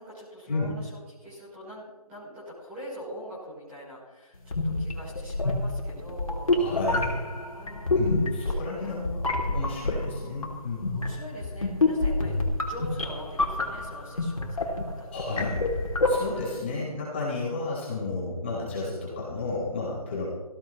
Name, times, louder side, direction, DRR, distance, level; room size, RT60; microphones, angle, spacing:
voice 1, 0.0-6.5 7.5-8.9 9.6-10.3 10.9-15.4 16.6-17.0 17.5-17.8, equal, 5° right, -10 dB, 4.3 m, -44 dB
sound 1, 4.4-16.6, left 2 dB, 60° left, 3.3 m, -28 dB
voice 2, 6.5-7.3 8.0-10.9 15.1-15.6 16.1-20.3, left 3 dB, 20° left, -6 dB, 4.7 m, -32 dB
19.0 x 16.0 x 3.2 m, 1.2 s
figure-of-eight pair, 175°, 20 cm